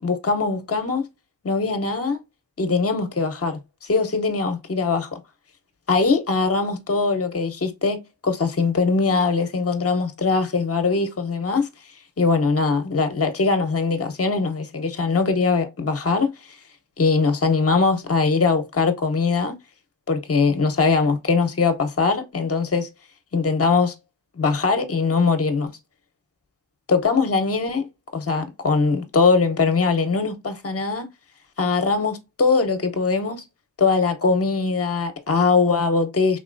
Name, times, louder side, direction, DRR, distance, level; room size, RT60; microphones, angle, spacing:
voice 1, 0.0-1.1 1.4-2.2 2.6-5.2 5.9-11.7 12.2-16.6 17.0-19.5 20.1-22.9 23.3-23.9 24.3-25.7 26.9-31.1 31.6-33.4 33.8-36.4, left 4 dB, 30° left, 0.8 m, -21 dB
3.8 x 2.9 x 2.5 m
cardioid pair, 55°, 45 cm